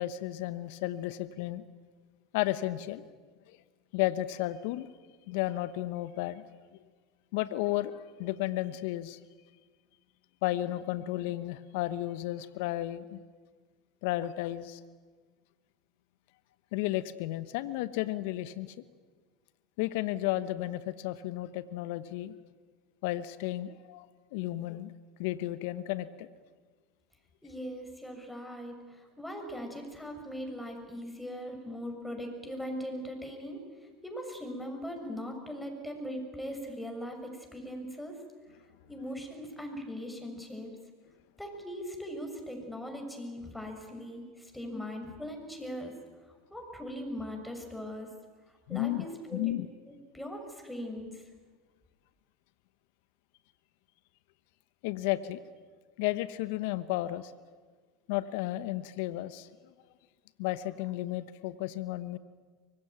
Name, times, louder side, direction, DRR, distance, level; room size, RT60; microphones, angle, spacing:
voice 1, 0.0-1.6 2.3-3.0 3.5-3.6 3.9-4.9 5.3-6.4 7.3-9.2 10.4-13.2 14.0-14.8 16.7-18.7 19.8-22.3 23.0-24.9 25.2-26.3 48.7-49.1 49.3-49.7 54.8-55.4 56.0-57.3 58.1-59.5 60.4-62.2, left 15 dB, 65° left, 14 dB, 1.1 m, -33 dB
voice 2, 27.4-33.6 34.0-38.2 38.9-40.7 41.4-45.9 46.5-48.1 48.7-49.5 49.9-51.2, equal, 5° left, 3 dB, 6.6 m, -40 dB
24.5 x 21.5 x 9.2 m, 1.5 s
hypercardioid pair, 85°, 0 cm